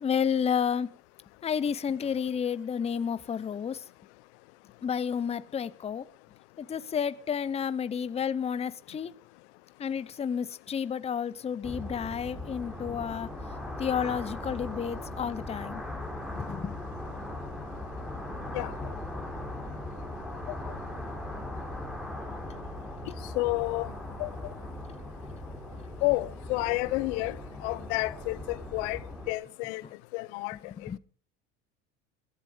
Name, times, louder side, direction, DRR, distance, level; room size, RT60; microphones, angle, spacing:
voice 1, 0.0-0.9 1.4-3.8 4.8-6.0 6.6-9.1 9.8-13.3 13.8-15.8 16.4-16.8 30.8-31.0, left 7 dB, 15° left, 0.7 m, -31 dB
sound 1, 11.6-29.3, left 1 dB, ahead, 3.5 m, -39 dB
voice 2, 23.3-23.9 24.2-24.5 26.0-29.0 29.3-29.8 30.1-30.9, left 22 dB, 70° left, 0.8 m, -30 dB
18.5 x 13.0 x 5.1 m
supercardioid pair, 120°, 35 cm